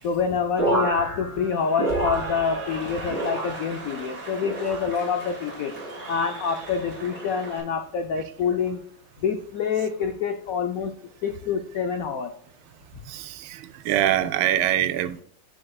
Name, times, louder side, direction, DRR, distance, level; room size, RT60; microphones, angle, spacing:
voice 1, 0.0-5.7 6.1-8.8 9.2-10.9 11.2-12.3, left 6 dB, 80° left, 0.7 m, -26 dB
sound 1, 0.6-2.8 3.1-3.9 4.4-5.1 5.7-6.2 7.1-7.5 8.4-8.7, right 2 dB, 10° left, 2.1 m, -30 dB
Cheering / Applause, 1.3-7.6, right 2 dB, 40° right, 2.5 m, -38 dB
voice 2, 13.1-15.2, right 12 dB, 85° right, 1.5 m, -24 dB
9.1 x 6.3 x 2.3 m
omnidirectional pair, 2.2 m